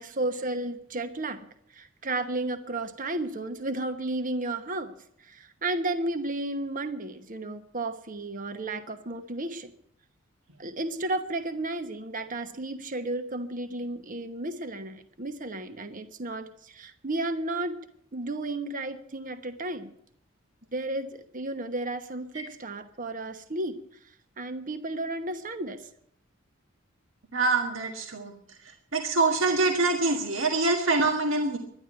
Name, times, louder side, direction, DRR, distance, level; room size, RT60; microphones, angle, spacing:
voice 1, 0.0-1.5 1.7-4.9 5.2-9.7 10.6-17.7 18.1-19.9 20.7-23.8 24.4-25.8, right 2 dB, 45° right, 9 dB, 1.1 m, -33 dB
voice 2, 27.3-28.3 28.9-31.6, right 3 dB, 85° right, 2 dB, 1.6 m, -25 dB
12.0 x 11.0 x 8.6 m, 0.67 s
head